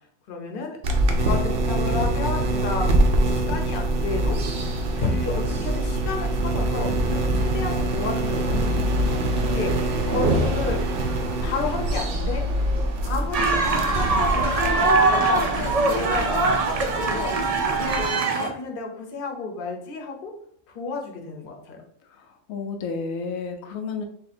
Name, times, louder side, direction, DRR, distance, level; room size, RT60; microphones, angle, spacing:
voice 1, 0.3-0.8 1.2-4.6 5.0-8.8 9.5-10.8 11.4-12.4 13.0-16.5 17.0-18.1 18.3-20.3 20.7-21.8, left 4 dB, 50° left, 3 dB, 0.8 m, -31 dB
sound 1, 0.8-18.0, right 1 dB, 55° right, 0.7 m, -24 dB
sound 2, 13.3-18.5, right 3 dB, 75° right, 0.3 m, -22 dB
voice 2, 22.1-24.0, left 5 dB, 85° left, 5 dB, 1.0 m, -32 dB
3.6 x 2.8 x 4.1 m, 0.68 s
omnidirectional pair, 1.4 m